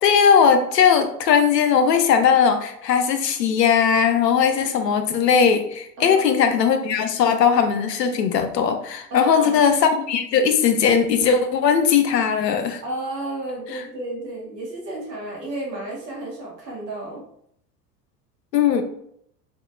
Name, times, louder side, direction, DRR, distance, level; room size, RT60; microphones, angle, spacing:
voice 1, 0.0-12.8 13.7-13.8 18.5-18.8, left 7 dB, 80° left, 8 dB, 0.5 m, -19 dB
voice 2, 6.0-6.3 9.1-9.7 12.8-17.2, right 1 dB, 80° right, -3 dB, 1.1 m, -32 dB
2.7 x 2.4 x 2.4 m, 0.70 s
figure-of-eight pair, 80°, 48 cm